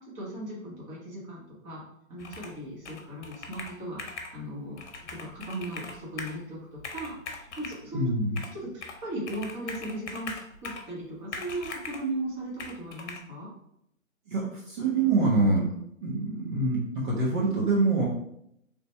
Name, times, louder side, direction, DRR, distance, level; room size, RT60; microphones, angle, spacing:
voice 1, 0.1-1.8 2.1-4.8 5.1-8.1 8.5-13.5, right 1 dB, 15° right, -4 dB, 1.1 m, -37 dB
Computer keyboard, 2.2-2.6 2.8-4.4 4.8-6.4 6.8-7.8 8.4-9.0 9.3-10.9 11.3-12.1 12.6-13.2, left 4 dB, 55° left, 0.9 m, -40 dB
voice 2, 7.9-8.4 14.3-15.7 16.0-18.1, right 3 dB, 35° right, -4 dB, 1.0 m, -25 dB
3.9 x 3.4 x 3.2 m, 0.74 s
figure-of-eight pair, 140°, 41 cm